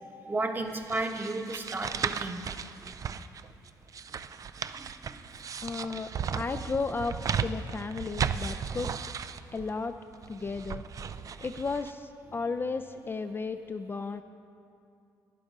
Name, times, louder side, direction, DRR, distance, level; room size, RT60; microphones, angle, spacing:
voice 1, 0.3-2.7 4.7-4.8, right 2 dB, 25° right, 4 dB, 1.1 m, -33 dB
sound 1, 0.8-11.9, right 7 dB, 45° right, 0.4 m, -35 dB
voice 2, 5.6-6.1 6.3-7.2 7.4-9.0 9.5-9.9 10.3-10.8 11.4-14.2, left 4 dB, 30° left, 7 dB, 0.4 m, -34 dB
11.5 x 10.5 x 5.1 m, 2.5 s
cardioid pair, 90°, 8 cm